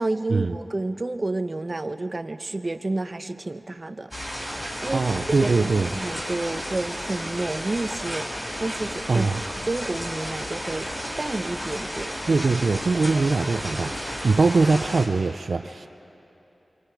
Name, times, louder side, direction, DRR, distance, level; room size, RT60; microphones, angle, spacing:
voice 1, 0.0-4.1 4.4-5.1 5.4-10.9 11.2-12.1, right 2 dB, 40° right, 9 dB, 0.8 m, -30 dB
sound 1, 4.1-15.1, equal, 20° left, 4.3 m, -32 dB
voice 2, 4.9-5.9 9.1-9.4 12.3-15.9, right 4 dB, 70° right, 8 dB, 0.5 m, -22 dB
26.5 x 26.0 x 4.8 m, 2.9 s
wide cardioid pair, 70°, 0 cm